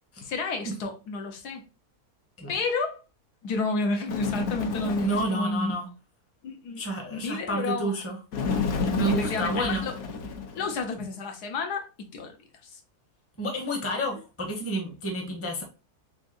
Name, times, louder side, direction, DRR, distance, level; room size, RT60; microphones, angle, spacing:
voice 1, 0.2-1.6 2.5-3.0 3.4-5.7 6.4-6.8 7.1-8.0 9.1-10.0 10.5-12.4 12.6-12.8, left 3 dB, 85° left, 1.4 m, -31 dB
Bird, 4.1-5.5 8.3-10.8, left 5 dB, 55° left, 1.0 m, -30 dB
voice 2, 5.0-5.9 6.8-8.2 8.9-9.8 13.4-15.6, right 1 dB, 10° left, 0.7 m, -29 dB
3.7 x 3.6 x 2.5 m
omnidirectional pair, 1.7 m